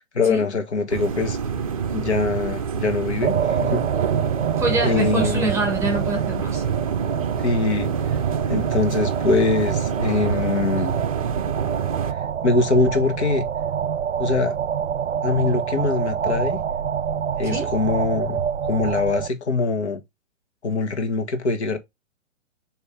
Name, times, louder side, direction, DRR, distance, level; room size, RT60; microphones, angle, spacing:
voice 1, 0.0-1.4 1.9-3.3 3.6-3.8 4.8-5.5 7.4-7.9 8.5-11.0 12.4-13.5 14.2-14.5 15.2-16.6 17.4-20.0 20.6-21.8, left 3 dB, 60° left, 1.6 m, -23 dB
sound 1, 0.9-12.1, right 7 dB, 30° right, 0.5 m, -27 dB
sound 2, 3.2-19.3, right 8 dB, 75° right, 0.5 m, -27 dB
voice 2, 4.6-6.6 7.8-7.9 17.4-17.7, right 1 dB, 5° right, 1.1 m, -25 dB
8.1 x 3.2 x 3.8 m
figure-of-eight pair, 125°, 38 cm